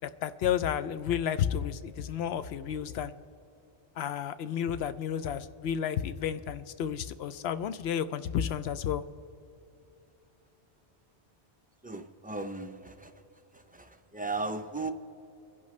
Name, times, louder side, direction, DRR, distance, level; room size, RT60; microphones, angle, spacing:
voice 1, 0.0-3.1 4.0-9.0, left 9 dB, 70° left, 13 dB, 0.8 m, -31 dB
voice 2, 11.8-13.1 13.5-14.9, right 3 dB, 15° right, 6 dB, 0.4 m, -36 dB
25.5 x 11.0 x 3.2 m, 2.8 s
omnidirectional pair, 1.1 m